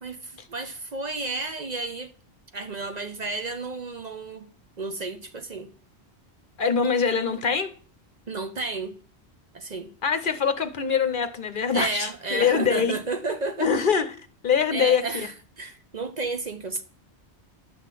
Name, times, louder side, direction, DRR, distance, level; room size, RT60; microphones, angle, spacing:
voice 1, 0.0-2.1 2.5-4.5 4.8-5.7 8.3-8.9 9.5-9.9 11.7-13.7 14.7-16.8, right 3 dB, 45° right, 0.8 m, -32 dB
voice 2, 6.6-7.7 10.0-13.0 13.6-14.2 14.4-15.3, left 6 dB, 55° left, 0.9 m, -23 dB
11.0 x 3.8 x 7.4 m
omnidirectional pair, 1.1 m